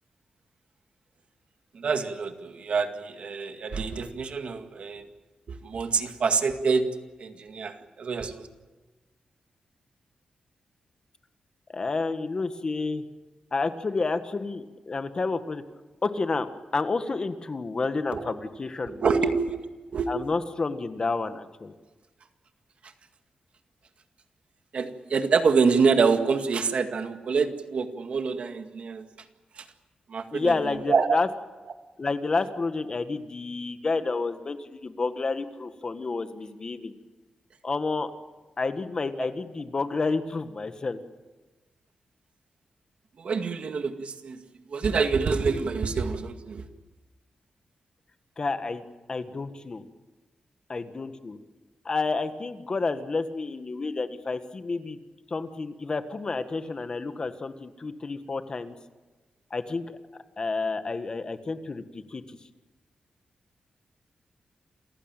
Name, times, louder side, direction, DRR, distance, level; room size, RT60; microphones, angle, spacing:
voice 1, 1.7-5.1 5.5-6.9 7.2-8.5 18.1-18.3 18.9-19.6 19.9-20.1 24.7-29.1 29.5-29.7 30.1-30.5 30.9-31.2 43.2-44.4 44.7-46.6, right 5 dB, 60° right, 6 dB, 2.0 m, -26 dB
voice 2, 11.7-13.0 13.5-15.6 16.0-19.1 20.1-21.7 30.3-31.3 32.0-36.9 37.6-38.1 38.6-41.0 48.4-48.8 49.1-49.8 50.7-51.4 51.8-55.0 55.3-58.7 59.5-60.0 60.4-62.4, left 3 dB, 35° left, 9 dB, 1.6 m, -30 dB
28.0 x 15.5 x 9.0 m, 1.2 s
wide cardioid pair, 115°, 2 cm